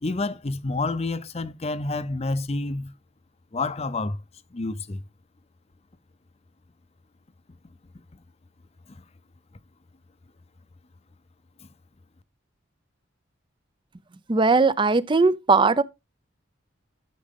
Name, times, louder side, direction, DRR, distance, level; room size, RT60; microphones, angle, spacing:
voice 1, 0.0-2.9 3.5-4.2 4.5-5.0, left 3 dB, 30° left, 0.6 m, -28 dB
voice 2, 14.3-15.8, right 4 dB, 25° right, 0.5 m, -19 dB
12.5 x 6.2 x 3.7 m
head